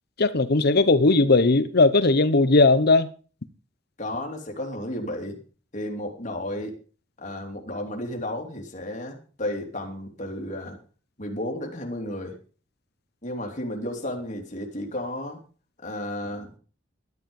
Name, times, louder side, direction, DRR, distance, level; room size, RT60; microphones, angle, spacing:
voice 1, 0.2-3.1, left 3 dB, 55° left, 0.9 m, -18 dB
voice 2, 4.0-5.4 5.7-6.8 7.2-10.8 11.2-12.3 13.2-15.4 15.8-16.5, left 1 dB, 40° left, 3.0 m, -33 dB
12.0 x 10.5 x 5.3 m
head